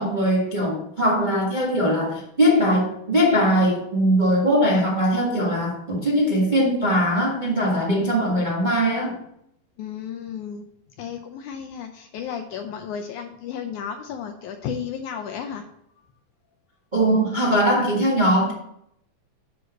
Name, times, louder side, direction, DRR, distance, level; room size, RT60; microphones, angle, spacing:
voice 1, 0.0-9.2 16.9-18.5, equal, 45° right, -4 dB, 0.6 m, -21 dB
voice 2, 9.8-10.6 11.0-15.6, left 7 dB, 75° left, 5 dB, 1.8 m, -33 dB
9.6 x 4.1 x 6.6 m, 0.74 s
omnidirectional pair, 4.0 m